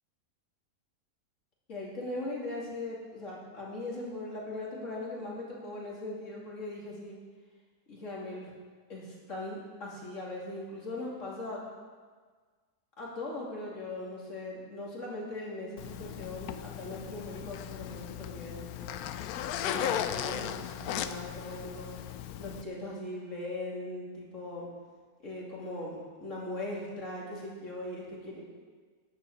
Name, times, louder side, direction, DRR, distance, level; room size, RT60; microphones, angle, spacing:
voice 1, 1.7-7.2 7.9-8.5 8.9-11.7 13.0-18.9 19.6-21.9 22.3-24.7 25.2-28.4, left 2 dB, 55° left, -4 dB, 3.1 m, -39 dB
Zipper (clothing), 15.8-22.6, left 10 dB, 80° left, 1.1 m, -37 dB
10.5 x 7.4 x 7.2 m, 1.5 s
omnidirectional pair, 1.5 m